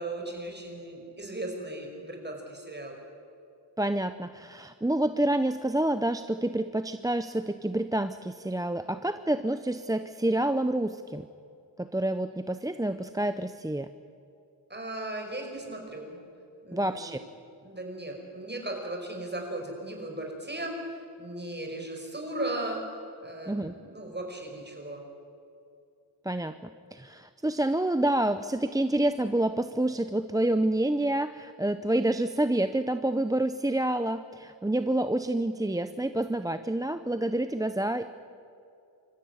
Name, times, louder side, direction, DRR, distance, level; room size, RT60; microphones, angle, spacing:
voice 1, 0.0-3.0 14.7-16.2 16.6-17.2 17.6-25.0, right 1 dB, 25° right, 1 dB, 5.3 m, -37 dB
voice 2, 3.8-11.3 11.8-13.9 16.7-17.2 23.5-23.8 26.2-26.6 26.9-38.1, right 1 dB, 10° right, 10 dB, 0.6 m, -28 dB
26.0 x 14.5 x 9.5 m, 2.5 s
wide cardioid pair, 105°, 43 cm